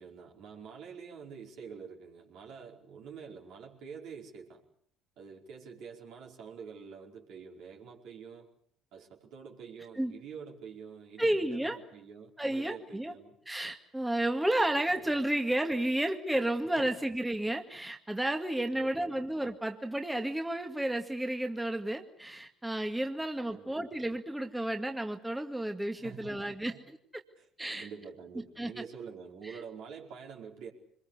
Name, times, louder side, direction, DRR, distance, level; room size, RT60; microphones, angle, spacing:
voice 1, 0.0-4.6 5.2-8.5 8.9-13.4 14.8-15.2 16.8-16.9 18.7-19.2 23.5-23.9 25.9-26.8 27.4-27.5 27.7-30.7, right 6 dB, 65° right, 0 dB, 4.9 m, -47 dB
voice 2, 11.2-11.8 12.4-13.1 13.5-26.8 27.1-27.2 27.6-27.9 28.6-28.8 29.4-29.6, right 1 dB, 10° right, 5 dB, 2.2 m, -32 dB
25.5 x 21.5 x 8.4 m, 0.65 s
hypercardioid pair, 55°, 0 cm